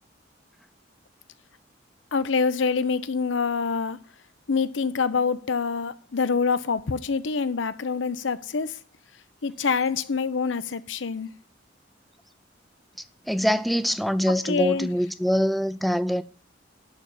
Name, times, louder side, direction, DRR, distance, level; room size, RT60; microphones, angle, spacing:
voice 1, 2.1-4.0 4.5-8.8 9.4-11.3 14.5-14.9, left 5 dB, 85° left, 0.7 m, -26 dB
voice 2, 13.3-16.2, equal, ahead, 0.4 m, -24 dB
11.0 x 4.1 x 7.3 m
head